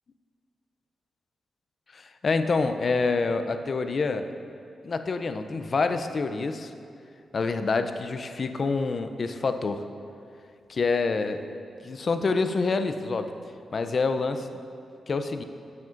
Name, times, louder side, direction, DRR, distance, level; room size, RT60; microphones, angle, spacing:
voice 1, 1.9-4.3 4.8-6.7 7.3-9.8 10.7-11.4 11.8-13.3 13.7-14.6 15.1-15.4, left 4 dB, 45° left, 8 dB, 0.4 m, -27 dB
9.3 x 7.5 x 2.5 m, 2.4 s
wide cardioid pair, 115°, 0 cm